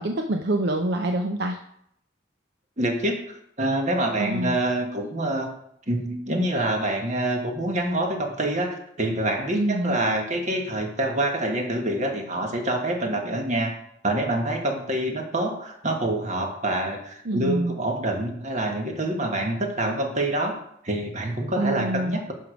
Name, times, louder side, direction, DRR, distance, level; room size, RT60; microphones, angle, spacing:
voice 1, 0.0-1.6 4.2-4.6 9.5-10.0 17.2-17.8 21.6-22.2, right 1 dB, 65° right, 4 dB, 0.6 m, -26 dB
voice 2, 2.8-3.2 3.6-5.5 5.9-13.7 14.0-22.3, right 1 dB, 40° right, 3 dB, 1.4 m, -26 dB
11.0 x 4.7 x 5.1 m, 0.71 s
head